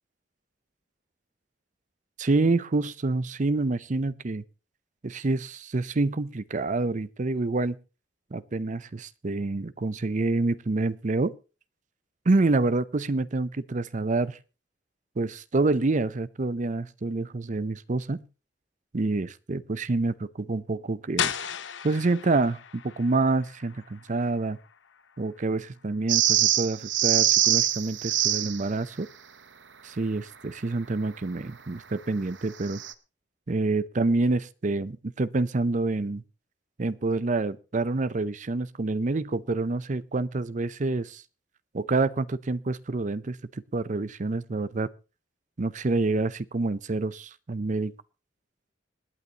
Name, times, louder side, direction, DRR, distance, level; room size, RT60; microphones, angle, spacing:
voice 1, 2.2-4.4 5.0-7.8 8.3-11.3 12.3-14.4 15.2-18.2 18.9-21.3 21.8-24.6 25.2-29.1 29.8-32.8 33.5-36.2 36.8-41.2 41.7-44.9 45.6-47.9, right 3 dB, 40° right, 16 dB, 0.6 m, -27 dB
sound 1, 21.2-26.8, left 8 dB, 80° left, 0.9 m, -37 dB
sound 2, 26.1-28.6 32.7-32.9, right 11 dB, 75° right, 0.9 m, -23 dB
26.0 x 9.5 x 2.9 m, 0.33 s
head